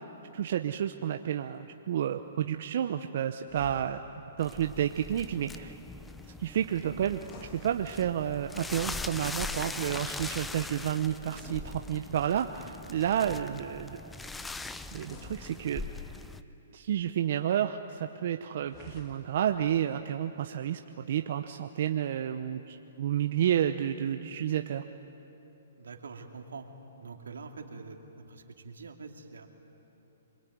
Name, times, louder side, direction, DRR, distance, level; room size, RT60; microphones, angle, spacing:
voice 1, 0.0-4.0 4.4-5.7 6.4-14.0 14.9-15.8 16.7-24.8, right 10 dB, 55° right, 7 dB, 0.9 m, -30 dB
sound 1, 3.4-4.4 7.1-8.4 11.3-12.5 15.0-16.2 18.6-19.6, left 3 dB, 30° left, 3.0 m, -51 dB
sound 2, 4.4-16.4, left 3 dB, 5° left, 0.7 m, -41 dB
voice 2, 25.8-26.6 27.0-28.0 28.3-29.5, right 4 dB, 90° right, 4 dB, 2.7 m, -44 dB
27.0 x 22.0 x 9.4 m, 3.0 s
hypercardioid pair, 145°, 0 cm